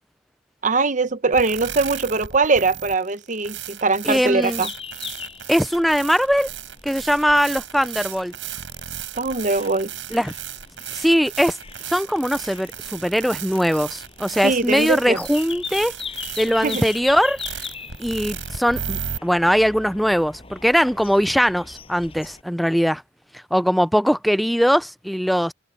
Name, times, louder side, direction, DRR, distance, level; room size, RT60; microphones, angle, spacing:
voice 1, 0.6-4.7 9.2-9.9 14.4-15.2 16.6-16.8, right 3 dB, 40° right, 1.0 m, -21 dB
sound 1, 1.3-19.2, right 8 dB, 90° right, 5.1 m, -35 dB
sound 2, 4.1-22.4, left 5 dB, 30° left, 6.1 m, -39 dB
voice 2, 4.1-4.6 5.5-6.5 6.8-8.3 10.1-10.3 10.9-11.6 11.9-15.9 16.4-17.4 18.0-23.0 23.5-25.5, equal, ahead, 0.4 m, -20 dB
head